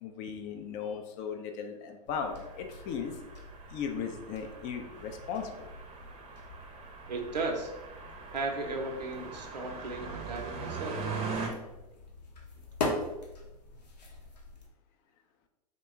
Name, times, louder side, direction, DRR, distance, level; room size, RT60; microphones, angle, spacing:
voice 1, 0.0-3.2 3.7-5.7, left 6 dB, 40° left, 5 dB, 0.4 m, -37 dB
sound 1, 2.0-14.7, left 2 dB, 85° left, 0.7 m, -43 dB
sound 2, 2.2-11.5, right 5 dB, 30° right, 0.6 m, -42 dB
voice 2, 7.1-7.7 8.3-11.0, right 3 dB, 85° right, 3 dB, 0.6 m, -35 dB
2.9 x 2.2 x 3.4 m, 1.0 s
hypercardioid pair, 105°, 21 cm